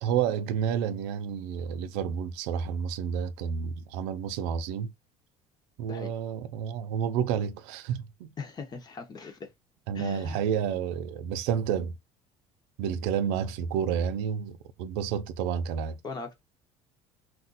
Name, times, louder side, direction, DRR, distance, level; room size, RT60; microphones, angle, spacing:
voice 1, 0.0-4.9 5.8-8.3 9.9-11.9 12.8-16.0, right 8 dB, 90° right, 0.5 m, -30 dB
voice 2, 8.4-9.5 9.9-10.4 16.0-16.4, left 4 dB, 30° left, 0.9 m, -39 dB
2.5 x 2.1 x 3.9 m
cardioid pair, 115°, 13 cm